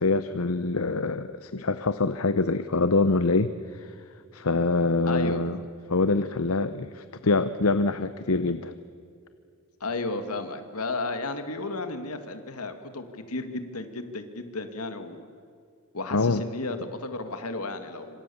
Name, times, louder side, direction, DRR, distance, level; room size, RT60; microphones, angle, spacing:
voice 1, 0.0-3.9 4.3-5.6 5.9-8.7 16.1-16.4, left 3 dB, 70° left, 12 dB, 0.9 m, -25 dB
voice 2, 5.0-5.4 9.8-15.3 15.9-18.2, left 2 dB, 90° left, 8 dB, 2.3 m, -33 dB
26.5 x 26.5 x 7.1 m, 2.4 s
head